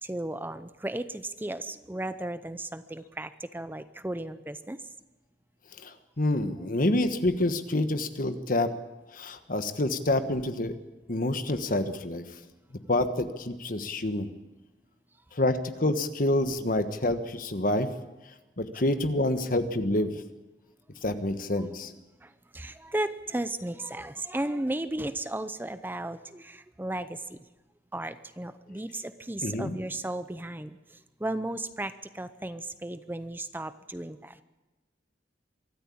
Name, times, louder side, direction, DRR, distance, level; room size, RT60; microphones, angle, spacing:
voice 1, 0.0-4.8 8.4-8.5 21.6-21.7 22.2-27.4 27.9-30.7 31.2-34.4, right 1 dB, 10° right, 12 dB, 0.6 m, -35 dB
voice 2, 5.8-8.7 9.1-10.7 11.1-12.2 12.9-14.3 15.3-17.9 18.6-20.2 21.0-21.9 29.4-29.8, left 1 dB, 50° left, 9 dB, 1.4 m, -27 dB
24.0 x 13.5 x 8.7 m, 1.1 s
head